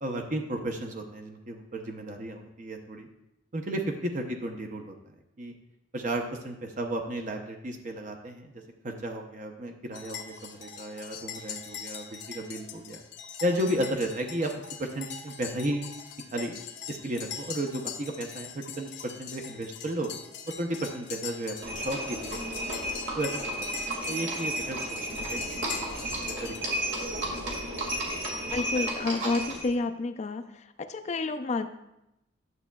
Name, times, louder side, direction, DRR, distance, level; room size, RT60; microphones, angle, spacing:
voice 1, 0.0-3.1 3.5-4.9 5.4-5.5 5.9-8.5 8.8-13.0 13.4-14.5 14.8-15.9 16.3-16.6 16.9-20.1 20.6-22.7 23.2-25.4 26.1-26.8, right 1 dB, 40° right, 3 dB, 0.6 m, -33 dB
sound 1, 9.9-26.6, left 8 dB, 65° left, 0.7 m, -42 dB
Livestock farm animals working animals, 21.6-29.7, right 1 dB, 75° right, 1.9 m, -33 dB
voice 2, 28.5-30.5 30.9-31.7, left 3 dB, 35° left, 8 dB, 0.4 m, -29 dB
11.0 x 7.0 x 2.2 m, 0.87 s
head